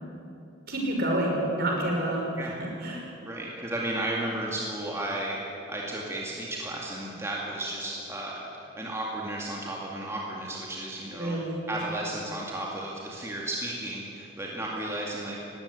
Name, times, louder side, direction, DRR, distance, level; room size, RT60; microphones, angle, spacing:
voice 1, 0.7-2.2 2.6-3.0 11.1-11.6, right 1 dB, 50° right, -1 dB, 5.9 m, -28 dB
voice 2, 3.2-5.4 5.7-11.4 11.7-15.4, right 1 dB, 15° right, -3 dB, 2.3 m, -34 dB
19.5 x 17.0 x 9.9 m, 2.9 s
head